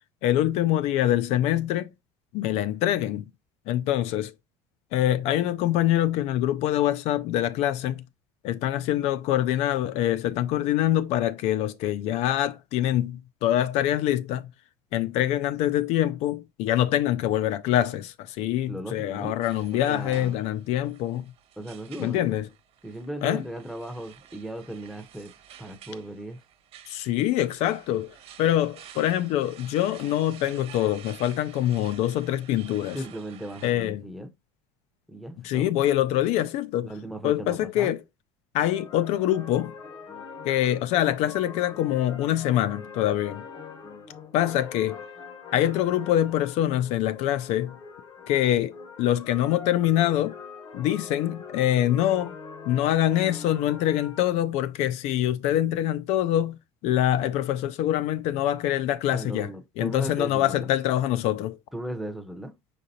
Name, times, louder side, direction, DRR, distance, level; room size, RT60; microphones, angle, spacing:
voice 1, 0.2-1.9 2.3-3.3 3.7-4.3 4.9-8.0 8.4-14.5 14.9-21.2 22.0-22.5 23.2-23.4 26.9-33.0 33.6-34.0 35.4-36.9 37.2-38.0 38.5-39.7 40.4-43.4 44.3-45.0 45.5-47.7 48.3-50.4 50.7-52.3 52.7-56.6 56.8-59.5 59.8-61.6, left 12 dB, 60° left, 0.4 m, -25 dB
voice 2, 18.7-19.3 19.7-20.3 21.6-22.2 22.8-25.3 25.6-26.4 32.9-34.3 35.1-35.7 36.8-37.9 59.1-60.7 61.7-62.5, right 1 dB, ahead, 0.6 m, -36 dB
sound 1, 19.4-33.7, right 10 dB, 55° right, 1.2 m, -50 dB
sound 2, 38.6-54.3, left 5 dB, 35° left, 0.9 m, -43 dB
5.3 x 3.7 x 2.7 m
cardioid pair, 145°, 12 cm